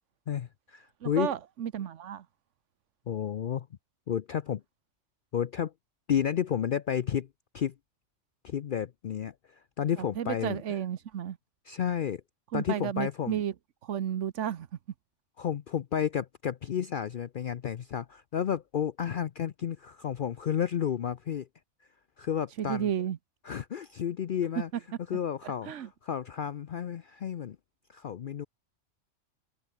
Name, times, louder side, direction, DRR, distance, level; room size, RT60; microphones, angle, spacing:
voice 1, 0.3-1.3 3.1-3.7 4.1-4.6 5.3-5.7 6.1-7.3 7.5-7.7 8.4-10.6 11.7-12.2 12.5-13.4 15.4-21.5 22.2-22.9 23.4-24.7 25.1-27.6 27.9-28.5, left 9 dB, 55° left, 0.7 m, -31 dB
voice 2, 1.0-2.2 10.2-11.4 12.5-13.5 13.8-14.7 22.6-23.2 25.4-25.9, right 9 dB, 85° right, 1.2 m, -32 dB
omnidirectional pair, 1.2 m